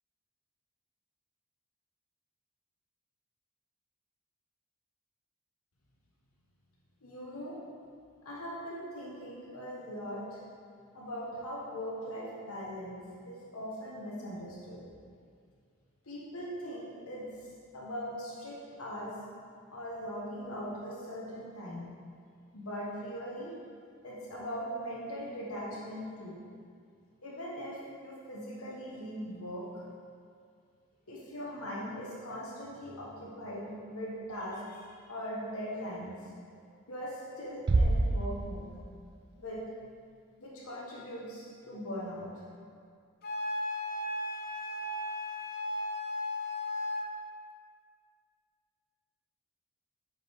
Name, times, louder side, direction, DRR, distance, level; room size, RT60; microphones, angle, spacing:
voice 1, 7.0-7.5 8.2-10.4 10.9-14.8 16.0-17.3 17.7-19.1 19.7-21.9 22.5-23.5 24.0-26.3 27.2-29.8 31.1-36.2 36.5-36.6 36.9-38.7 39.4-39.6 40.4-42.4, equal, 85° left, -6 dB, 1.2 m, -40 dB
Bass drum, 37.7-39.1, right 2 dB, 50° right, 0.4 m, -27 dB
Wind instrument woodwind instrument, 43.2-47.1, left 1 dB, 45° left, 0.6 m, -35 dB
6.8 x 5.1 x 3.5 m, 2.2 s
head